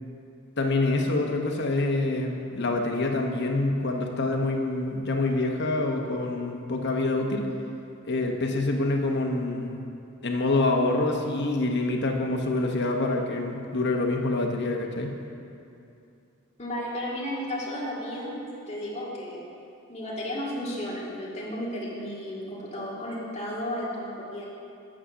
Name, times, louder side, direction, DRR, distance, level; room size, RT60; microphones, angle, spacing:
voice 1, 0.6-7.5 8.0-9.8 10.2-15.1, left 2 dB, 50° left, 2 dB, 0.9 m, -26 dB
voice 2, 16.6-18.4 18.7-19.4 19.9-24.4, left 1 dB, 30° left, -6 dB, 2.1 m, -33 dB
8.7 x 6.3 x 6.2 m, 2.7 s
head